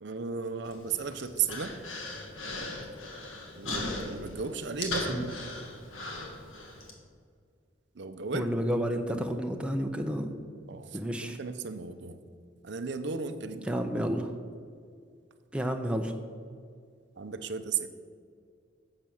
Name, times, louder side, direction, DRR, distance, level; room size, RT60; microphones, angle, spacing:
voice 1, 0.0-1.8 3.5-5.3 7.9-8.5 8.8-9.3 10.7-12.2 12.6-13.8 17.2-17.9, right 5 dB, 60° right, 10 dB, 0.5 m, -35 dB
Human voice, 0.7-6.9, left 2 dB, 85° left, 1.6 m, -38 dB
voice 2, 3.7-4.0 5.1-5.3 8.3-10.3 10.9-11.4 13.7-14.3 15.5-16.1, equal, 5° right, 4 dB, 0.5 m, -31 dB
7.6 x 6.1 x 7.0 m, 2.2 s
head